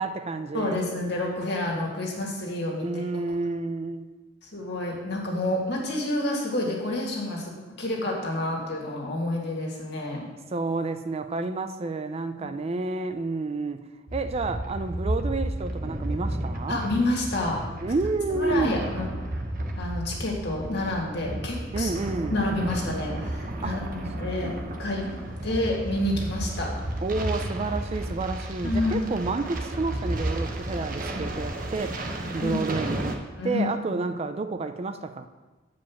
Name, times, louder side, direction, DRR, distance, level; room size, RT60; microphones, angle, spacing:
voice 1, 0.0-0.8 2.8-4.1 10.5-13.8 14.1-16.8 17.8-18.8 21.7-22.3 23.6-23.8 27.0-32.0 32.3-33.2 33.4-35.3, right 3 dB, 35° right, 9 dB, 0.4 m, -30 dB
voice 2, 0.5-3.0 4.5-10.3 12.4-12.5 16.7-17.6 18.3-19.1 19.8-21.9 22.3-25.1 25.4-26.7 28.6-29.1 32.4-32.6 33.4-33.7, left 1 dB, 65° left, -1 dB, 2.0 m, -29 dB
sound 1, 14.1-33.2, right 1 dB, 50° right, 1.0 m, -32 dB
7.5 x 5.1 x 7.2 m, 1.2 s
head